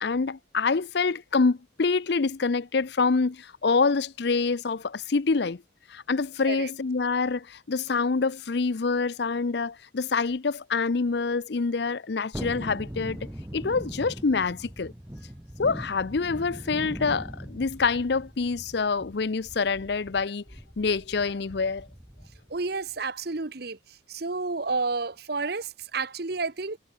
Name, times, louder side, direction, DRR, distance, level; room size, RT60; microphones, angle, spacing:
voice 1, 0.0-5.6 5.9-13.2 13.5-14.9 15.6-20.4 20.8-21.9, left 4 dB, 60° left, 0.6 m, -26 dB
Thunderstorm, 12.3-22.6 22.9-23.0, equal, 10° right, 1.1 m, -41 dB
voice 2, 22.5-23.8 24.1-26.8, right 3 dB, 55° right, 1.0 m, -30 dB
head